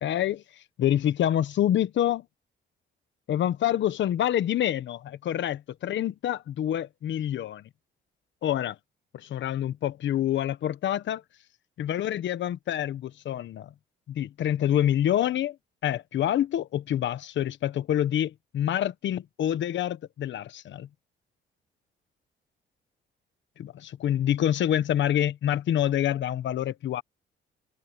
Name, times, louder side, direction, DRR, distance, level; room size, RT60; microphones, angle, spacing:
voice 1, 0.0-2.2 3.3-7.6 8.4-8.8 9.1-11.2 11.8-13.7 14.1-15.6 15.8-20.9 23.6-27.0, left 11 dB, 70° left, 1.1 m, -27 dB
cardioid pair, 90°, 20 cm